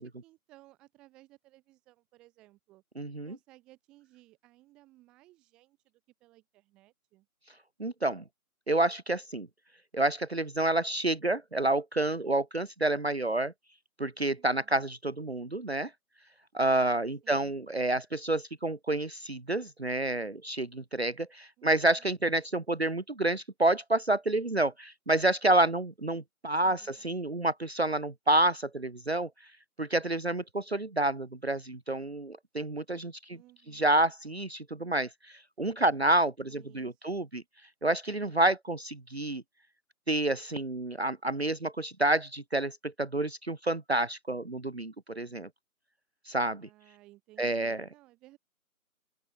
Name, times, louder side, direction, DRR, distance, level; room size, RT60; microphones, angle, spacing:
voice 1, 0.0-2.8 3.2-7.3 14.3-14.9 17.2-17.6 21.6-22.0 26.6-27.2 33.3-33.9 36.4-37.2 46.6-48.4, right 17 dB, ahead, 2.5 m, -59 dB
voice 2, 3.0-3.4 7.8-8.2 8.7-9.5 9.9-13.5 14.0-15.9 16.5-29.3 29.8-33.4 33.7-37.4 37.8-39.4 40.1-45.5 46.3-46.7 47.4-47.8, right 2 dB, 45° right, 1.1 m, -29 dB
open air
figure-of-eight pair, 170°, 44 cm